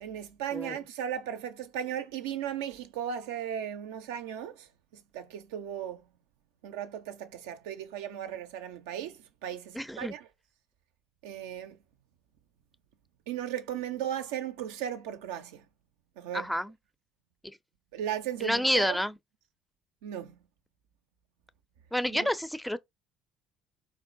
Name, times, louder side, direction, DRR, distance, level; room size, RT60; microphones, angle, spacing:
voice 1, 0.0-4.7 5.1-6.0 6.6-10.3 11.2-11.8 13.3-15.6 16.2-16.5 17.9-19.0 20.0-20.4 22.1-22.3, right 10 dB, 80° right, 0.4 m, -36 dB
voice 2, 9.7-10.1 16.3-16.7 17.4-17.6 18.4-19.1 21.9-22.8, equal, 5° left, 0.4 m, -29 dB
3.6 x 2.1 x 2.5 m
hypercardioid pair, 60°, 0 cm